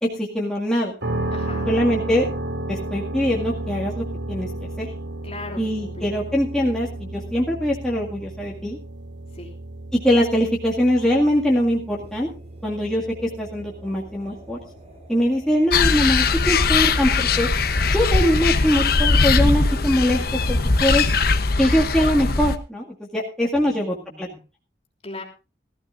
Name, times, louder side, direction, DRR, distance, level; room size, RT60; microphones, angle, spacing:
voice 1, 0.0-0.9 1.7-2.3 2.7-4.5 4.8-4.9 5.6-8.8 9.9-12.3 12.6-14.6 15.1-17.5 17.9-20.2 20.5-21.0 21.6-24.3, equal, 5° left, -4 dB, 2.0 m, -22 dB
sound 1, 1.0-16.9, right 2 dB, 85° right, 2.6 m, -33 dB
voice 2, 1.3-1.7 5.2-6.1 9.3-9.5 23.6-24.4 25.0-25.2, left 2 dB, 35° left, 0 dB, 3.2 m, -38 dB
sound 2, 11.9-19.2, right 1 dB, 35° right, 5.3 m, -48 dB
sound 3, 15.7-22.5, left 4 dB, 55° left, 1.0 m, -20 dB
18.5 x 14.5 x 2.6 m, 0.30 s
head